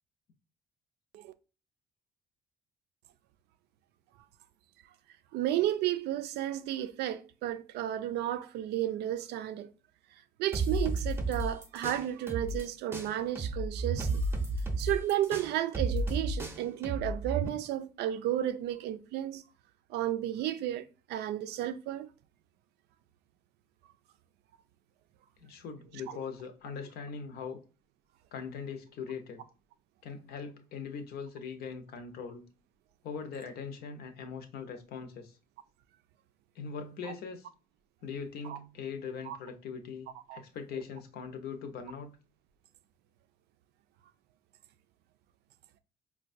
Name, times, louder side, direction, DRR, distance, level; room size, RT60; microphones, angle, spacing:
voice 1, 5.3-9.7 10.4-14.2 14.8-19.4 19.9-22.1 38.4-38.6 39.3-39.4 40.3-40.4, right 12 dB, 80° right, 0.4 m, -33 dB
sound 1, 10.5-12.7 12.9-17.5, right 2 dB, 15° right, 0.6 m, -32 dB
voice 2, 25.4-27.6 28.3-29.4 30.0-32.4 33.0-35.4 36.5-37.5 38.0-42.2, left 6 dB, 70° left, 0.7 m, -41 dB
4.6 x 2.2 x 2.5 m
cardioid pair, 110°, 17 cm